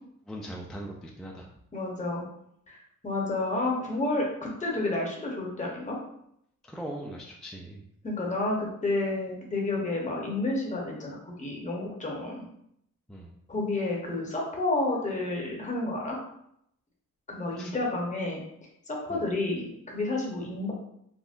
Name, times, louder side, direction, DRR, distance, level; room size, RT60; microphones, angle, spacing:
voice 1, 0.3-1.5 6.6-7.8 13.1-13.4 17.6-17.7 19.1-19.3, right 1 dB, ahead, -1 dB, 0.4 m, -40 dB
voice 2, 1.7-2.2 2.7-6.0 8.0-12.4 13.5-16.2 17.3-18.4 18.9-20.7, left 2 dB, 20° left, -2 dB, 0.8 m, -30 dB
3.6 x 2.1 x 2.5 m, 0.74 s
cardioid pair, 65°, 33 cm